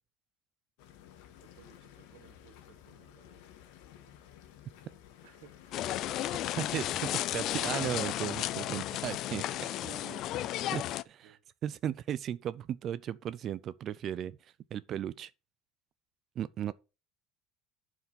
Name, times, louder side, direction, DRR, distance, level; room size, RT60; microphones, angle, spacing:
sound 1, 0.8-9.3, left 10 dB, 75° left, 1.6 m, -55 dB
voice 1, 1.4-3.5 5.2-5.9 8.3-9.2 9.6-10.6 11.2-11.4, right 11 dB, 75° right, 1.3 m, -57 dB
sound 2, 5.7-11.0, left 13 dB, 40° left, 0.4 m, -33 dB
voice 2, 6.6-9.4 10.7-15.3 16.4-16.7, right 10 dB, 35° right, 0.3 m, -36 dB
11.0 x 4.8 x 5.3 m
cardioid pair, 175°, 0 cm